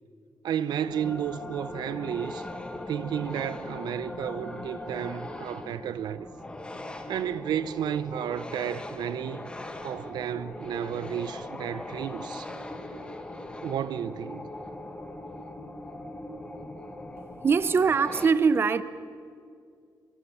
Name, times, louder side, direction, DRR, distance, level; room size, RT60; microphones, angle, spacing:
voice 1, 0.4-2.5 2.9-6.3 7.1-9.5 9.8-12.5 13.6-14.5, right 9 dB, 75° right, 0.7 m, -32 dB
sound 1, 0.7-18.3, left 1 dB, 15° left, 1.6 m, -40 dB
voice 2, 17.4-18.8, right 5 dB, 35° right, 0.7 m, -22 dB
26.0 x 24.0 x 7.0 m
cardioid pair, 150°, 7 cm